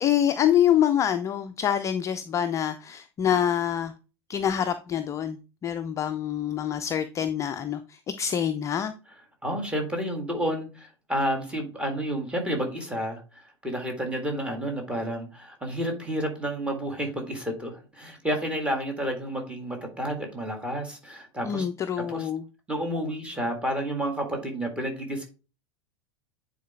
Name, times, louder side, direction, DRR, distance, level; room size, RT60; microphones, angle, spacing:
voice 1, 0.0-3.9 4.3-5.4 5.6-8.9 21.4-22.4, left 9 dB, 20° left, 0.4 m, -26 dB
voice 2, 9.4-21.7 22.1-22.3 22.7-25.3, equal, 10° right, 1.8 m, -30 dB
9.2 x 4.0 x 3.4 m
figure-of-eight pair, 85°, 14 cm